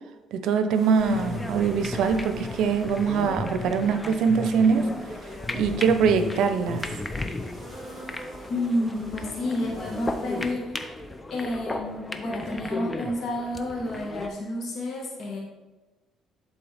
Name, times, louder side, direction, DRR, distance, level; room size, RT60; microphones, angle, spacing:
voice 1, 0.3-4.9 5.5-6.9, right 6 dB, 75° right, 9 dB, 0.7 m, -23 dB
sound 1, 0.7-10.5, equal, 10° right, 2.5 m, -45 dB
sound 2, 1.0-14.3, left 2 dB, 15° left, 0.6 m, -35 dB
voice 2, 8.5-11.0 11.3-15.4, left 1 dB, 55° left, -2 dB, 1.7 m, -30 dB
11.0 x 4.1 x 3.5 m, 1.1 s
cardioid pair, 95°, 0 cm